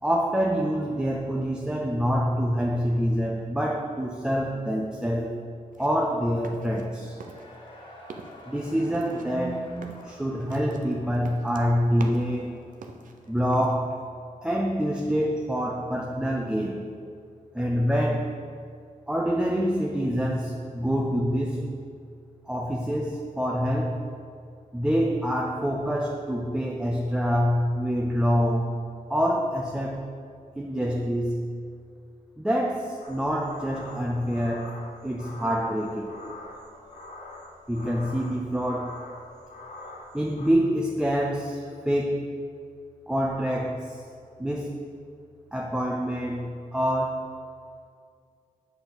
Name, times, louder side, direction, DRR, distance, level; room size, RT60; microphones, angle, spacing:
voice 1, 0.0-5.4 5.8-7.2 8.5-12.6 13.3-14.0 14.4-16.9 17.5-18.4 19.1-21.9 22.5-24.1 24.7-28.8 29.1-30.1 30.6-31.5 32.4-36.1 37.7-39.1 40.1-42.3 43.1-44.0 44.4-44.8 45.5-47.2, equal, 5° right, 0 dB, 0.5 m, -26 dB
sound 1, 5.7-6.9 7.2-7.7 8.0-8.4 8.9-12.4 12.7-13.7, right 4 dB, 70° right, 0.7 m, -44 dB
Cheering / Crowd, 6.8-13.5, left 1 dB, 35° left, 1.7 m, -50 dB
sound 2, 33.0-40.5, left 1 dB, 55° left, 1.5 m, -44 dB
7.9 x 4.4 x 6.8 m, 2.3 s
wide cardioid pair, 120°, 14 cm